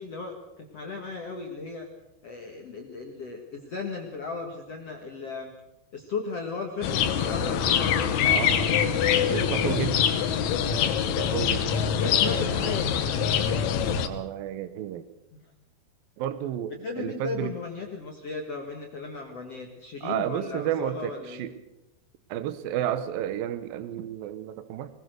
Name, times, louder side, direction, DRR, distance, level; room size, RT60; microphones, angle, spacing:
voice 1, 0.0-1.9 2.2-5.5 5.9-8.6 9.1-10.2 11.8-13.5 16.8-21.5, left 4 dB, 50° left, 2 dB, 2.1 m, -36 dB
sound 1, 6.8-14.1, left 8 dB, 70° left, 1.8 m, -24 dB
voice 2, 8.3-9.0 9.3-10.0 11.1-11.8 12.2-12.7 14.0-15.1 16.2-17.5 20.0-21.5 22.3-24.9, right 11 dB, 70° right, 11 dB, 2.4 m, -32 dB
21.0 x 20.0 x 6.6 m, 0.91 s
omnidirectional pair, 4.9 m